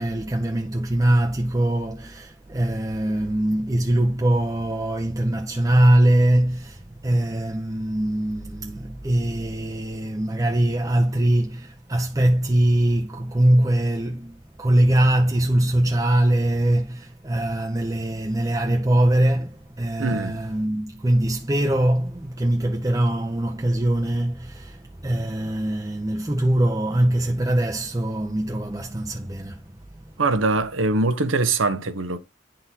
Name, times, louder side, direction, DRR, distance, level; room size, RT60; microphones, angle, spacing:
voice 1, 0.0-29.6, right 1 dB, 20° right, 0.6 m, -22 dB
voice 2, 20.0-20.4 30.2-32.2, right 3 dB, 90° right, 0.9 m, -22 dB
11.0 x 3.9 x 2.7 m
head